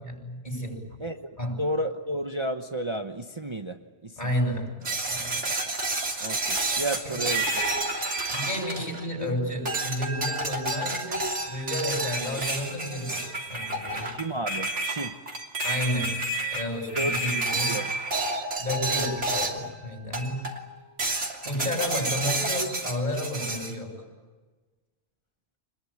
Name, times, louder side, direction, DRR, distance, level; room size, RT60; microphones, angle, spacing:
voice 1, 0.0-1.0 1.4-1.6 4.2-4.8 5.1-5.4 7.0-7.2 8.3-14.2 15.6-16.2 16.5-17.8 18.6-20.5 21.4-24.0, left 1 dB, 40° left, 2 dB, 7.6 m, -31 dB
voice 2, 1.6-4.2 6.2-7.5 14.1-15.1 17.0-17.2 17.5-17.9, right 1 dB, 25° right, 4 dB, 1.1 m, -32 dB
sound 1, 4.8-9.2 9.7-19.7 20.1-20.6 21.0-23.7, right 2 dB, 85° right, 3.5 m, -30 dB
26.5 x 21.5 x 8.8 m, 1.3 s
omnidirectional pair, 1.2 m